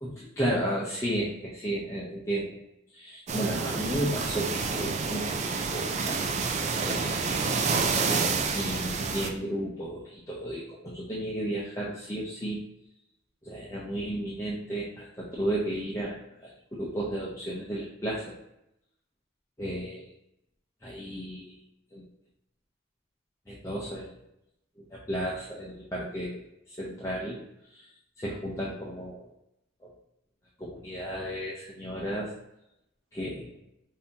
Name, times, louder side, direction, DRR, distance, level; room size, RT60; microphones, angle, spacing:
voice 1, 0.0-2.5 2.9-6.2 6.8-7.3 8.5-12.6 13.4-18.2 19.6-20.1 20.8-21.5 21.9-22.0 23.5-24.1 24.8-26.4 26.7-27.4 27.7-27.9 28.2-29.3 29.8-29.9 30.6-32.3 33.1-33.5, right 1 dB, 15° left, -5 dB, 0.6 m, -33 dB
sound 1, 3.3-9.3, right 4 dB, 35° right, 0.4 m, -28 dB
5.4 x 2.7 x 2.8 m, 0.82 s
head